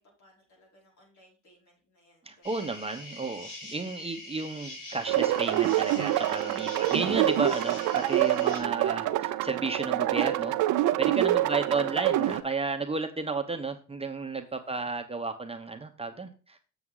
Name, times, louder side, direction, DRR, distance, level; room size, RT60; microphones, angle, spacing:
voice 1, 0.0-2.5 11.1-11.6 14.5-14.8, left 2 dB, 70° left, -2 dB, 5.4 m, -57 dB
voice 2, 2.2-10.5 11.0-16.7, right 4 dB, 20° right, 5 dB, 1.0 m, -32 dB
sound 1, 2.4-8.6, left 2 dB, 85° left, 4.1 m, -44 dB
sound 2, 5.1-12.4, right 13 dB, 90° right, 0.7 m, -26 dB
7.6 x 7.0 x 3.8 m, 0.33 s
cardioid pair, 90°, 30 cm